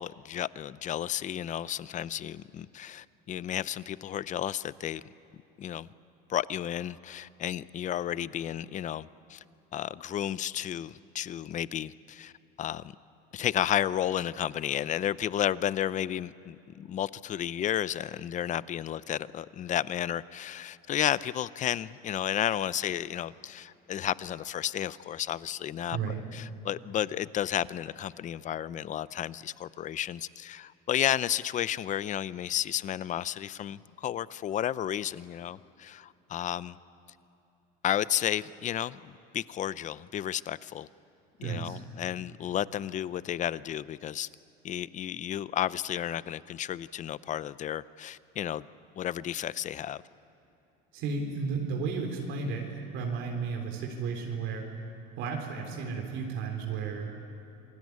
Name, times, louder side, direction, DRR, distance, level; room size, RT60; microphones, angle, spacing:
voice 1, 0.0-5.0 5.6-5.9 6.3-9.4 9.7-12.3 12.6-12.9 13.3-36.8 37.8-40.9 41.4-44.3 44.6-48.7 49.0-50.0, left 11 dB, 35° left, 18 dB, 0.6 m, -32 dB
voice 2, 41.4-41.8 50.9-54.7 55.2-57.1, right 5 dB, 65° right, 1 dB, 3.8 m, -33 dB
27.5 x 20.0 x 9.6 m, 2.8 s
supercardioid pair, 115°, 21 cm